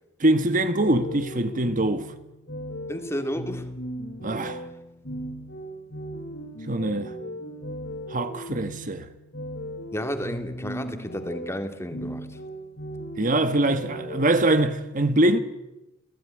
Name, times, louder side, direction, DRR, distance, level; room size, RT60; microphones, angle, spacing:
voice 1, 0.2-2.1 4.2-4.6 6.7-7.1 8.1-9.1 13.2-15.4, right 1 dB, 45° right, 1.4 m, -23 dB
sound 1, 0.8-14.5, equal, 70° left, 4.8 m, -37 dB
voice 2, 2.9-3.7 9.9-12.4, equal, 15° left, 2.4 m, -32 dB
30.0 x 16.5 x 9.9 m
head